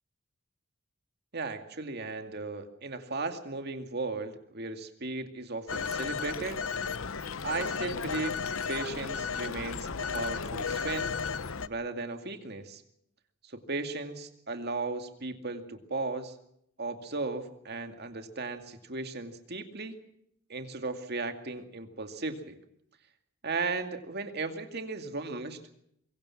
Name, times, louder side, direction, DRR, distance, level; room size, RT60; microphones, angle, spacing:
voice 1, 1.3-6.6 7.4-11.1 11.7-12.8 13.4-16.3 16.8-20.0 20.5-22.6 23.4-25.6, right 3 dB, 50° right, 7 dB, 2.3 m, -36 dB
Telephone, 5.7-11.7, left 5 dB, 70° left, 0.9 m, -34 dB
24.5 x 22.5 x 5.9 m, 0.73 s
head